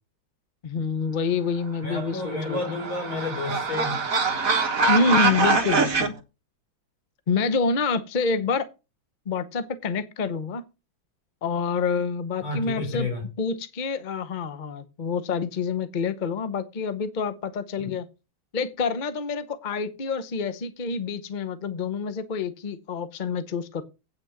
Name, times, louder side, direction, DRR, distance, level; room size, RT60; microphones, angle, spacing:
voice 1, 0.6-2.6 4.9-6.1 7.3-8.7 9.3-10.6 11.4-13.1 13.4-18.0 18.5-23.8, left 4 dB, 60° left, 0.4 m, -27 dB
voice 2, 1.8-4.0 12.4-13.3 17.8-17.9, left 3 dB, 80° left, 4.7 m, -31 dB
sound 1, 2.2-6.1, right 4 dB, 45° right, 1.7 m, -24 dB
8.8 x 6.0 x 7.0 m
omnidirectional pair, 2.2 m